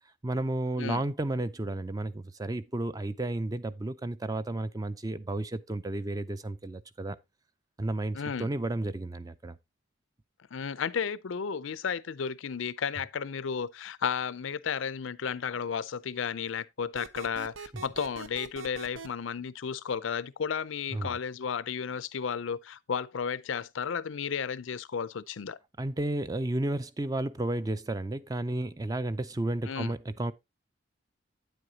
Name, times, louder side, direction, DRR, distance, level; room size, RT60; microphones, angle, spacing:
voice 1, 0.2-7.2 7.8-9.6 17.7-17.8 20.9-21.2 25.8-30.3, right 2 dB, 20° right, 0.4 m, -32 dB
voice 2, 8.1-8.5 10.5-25.6 29.7-29.9, left 6 dB, 75° left, 0.5 m, -33 dB
sound 1, 16.9-19.1, right 4 dB, 75° right, 0.7 m, -42 dB
9.1 x 7.8 x 2.8 m
head